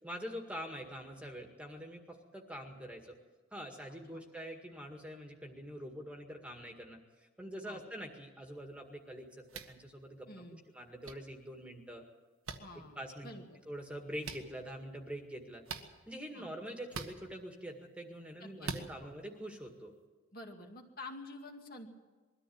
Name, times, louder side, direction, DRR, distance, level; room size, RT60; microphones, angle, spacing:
voice 1, 0.0-3.2 3.5-9.3 9.7-10.4 10.7-12.0 13.0-13.3 13.7-19.9, equal, 5° right, 3 dB, 1.9 m, -45 dB
sound 1, 9.5-9.7 11.0-11.1 12.4-12.6 14.2-14.4 15.6-15.9 16.9-17.1 18.6-18.9, right 4 dB, 80° right, 1.6 m, -41 dB
voice 2, 10.3-10.6 12.6-13.0 13.2-13.6 16.3-16.5 18.4-19.1 20.3-21.9, left 2 dB, 45° left, 2 dB, 2.3 m, -49 dB
22.5 x 14.0 x 8.7 m, 1.3 s
head